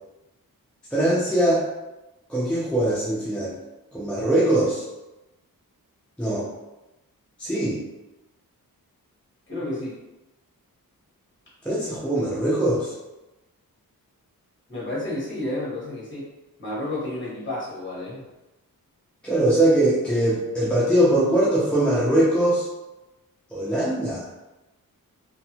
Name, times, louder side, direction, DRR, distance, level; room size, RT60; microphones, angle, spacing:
voice 1, 0.9-1.6 2.3-3.5 3.9-4.8 6.2-6.5 7.4-7.8 11.6-12.9 19.2-22.7 23.5-24.3, right 1 dB, 5° left, -8 dB, 0.4 m, -21 dB
voice 2, 9.5-10.0 14.7-16.2 16.6-18.2, left 1 dB, 35° left, -8 dB, 1.3 m, -31 dB
2.5 x 2.5 x 2.8 m, 1.0 s
wide cardioid pair, 180°, 35 cm